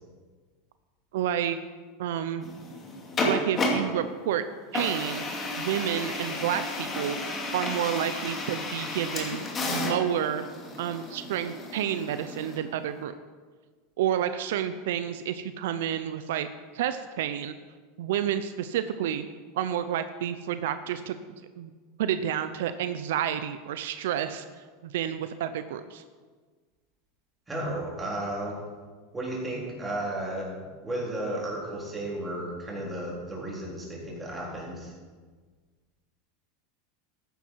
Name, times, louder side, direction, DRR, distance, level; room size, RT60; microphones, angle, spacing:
voice 1, 1.1-1.6 2.0-2.4 3.3-4.4 4.7-5.3 5.6-7.2 7.5-10.5 10.8-13.1 14.0-16.5 16.7-17.5 18.0-19.2 19.6-21.2 21.6-21.7 22.0-24.5 24.8-26.0, right 10 dB, 80° right, 11 dB, 0.6 m, -29 dB
sound 1, 2.4-4.0 4.7-12.6, left 2 dB, 25° left, 2.5 m, -32 dB
voice 2, 27.5-28.6 29.1-34.9, right 1 dB, 15° right, -4 dB, 3.7 m, -33 dB
13.5 x 10.5 x 4.6 m, 1.5 s
supercardioid pair, 135°, 0 cm